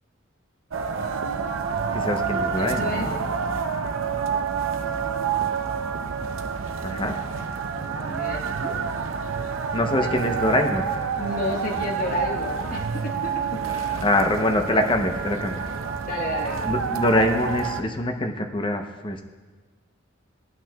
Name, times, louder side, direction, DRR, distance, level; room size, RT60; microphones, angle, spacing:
sound 1, 0.7-17.8, right 6 dB, 80° right, 0.6 m, -28 dB
voice 1, 1.9-3.1 6.8-7.1 9.7-10.9 13.7-15.6 16.7-19.2, left 1 dB, 25° left, 4 dB, 0.7 m, -24 dB
voice 2, 2.6-3.1 7.7-8.8 10.0-10.1 11.2-13.7 16.0-16.7, left 1 dB, 45° left, -1 dB, 1.4 m, -31 dB
17.0 x 9.0 x 2.3 m, 1.4 s
head